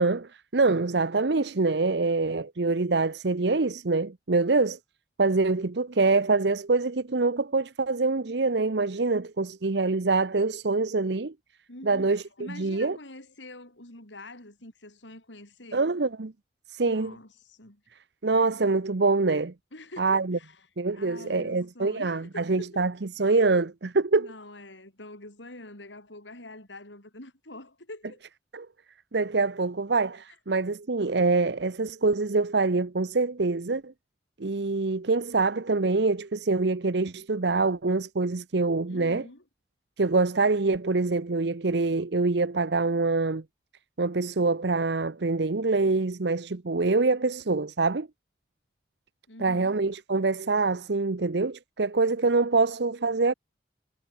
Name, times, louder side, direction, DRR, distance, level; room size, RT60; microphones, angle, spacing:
voice 1, 0.0-4.8 5.2-11.3 11.8-13.0 15.7-16.3 16.7-17.2 18.2-19.5 20.0-20.4 20.8-24.3 28.5-28.7 29.1-33.9 34.4-39.2 40.0-43.4 44.0-48.1 49.4-53.3, right 3 dB, 70° right, 0.8 m, -25 dB
voice 2, 11.7-15.8 16.8-17.8 19.7-20.7 21.0-22.8 24.2-28.2 38.9-39.4 49.3-49.8, left 1 dB, 90° left, 7.1 m, -45 dB
head